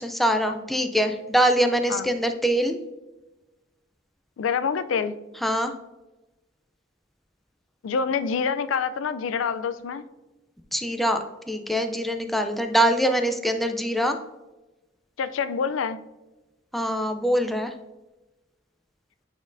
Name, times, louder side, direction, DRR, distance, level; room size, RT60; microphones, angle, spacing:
voice 1, 0.0-2.8 5.4-5.7 10.7-14.2 16.7-17.7, equal, ahead, 5 dB, 0.4 m, -23 dB
voice 2, 4.4-5.1 7.8-10.0 15.2-16.0, left 6 dB, 85° left, 12 dB, 0.4 m, -26 dB
9.1 x 4.3 x 2.5 m, 1.1 s
head